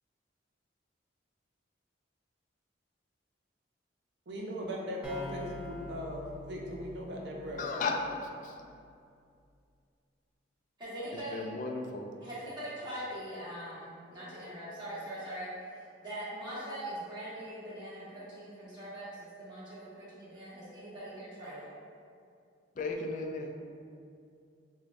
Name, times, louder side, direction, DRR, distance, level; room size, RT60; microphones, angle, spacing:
voice 1, 4.3-7.8, equal, 65° right, -1 dB, 0.6 m, -39 dB
sound 1, 5.0-8.7, left 2 dB, 5° right, 0.6 m, -46 dB
voice 2, 7.6-8.6 11.3-12.2 22.8-23.6, left 3 dB, 45° left, 3 dB, 0.3 m, -35 dB
voice 3, 10.8-11.4 12.2-15.5 16.0-21.7, right 1 dB, 25° right, -11 dB, 1.4 m, -42 dB
6.1 x 2.3 x 2.5 m, 2.4 s
head